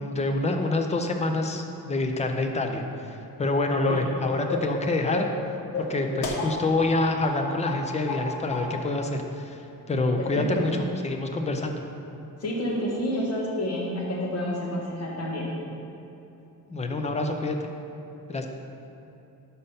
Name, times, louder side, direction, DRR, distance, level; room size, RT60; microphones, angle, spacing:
voice 1, 0.0-3.1 3.4-5.3 5.8-9.6 9.9-10.7 11.0-11.8 16.7-17.6 18.3-18.5, left 2 dB, 20° left, 4 dB, 0.4 m, -26 dB
sound 1, 3.8-4.1 4.5-4.8 5.1-5.4 5.7-6.9 7.2-7.4 7.6-8.2 8.5-8.7, left 3 dB, 85° left, 1.1 m, -31 dB
voice 2, 10.2-10.7 12.4-15.5, left 1 dB, 45° left, -3 dB, 1.3 m, -29 dB
5.5 x 5.1 x 5.5 m, 2.9 s
wide cardioid pair, 180°, 36 cm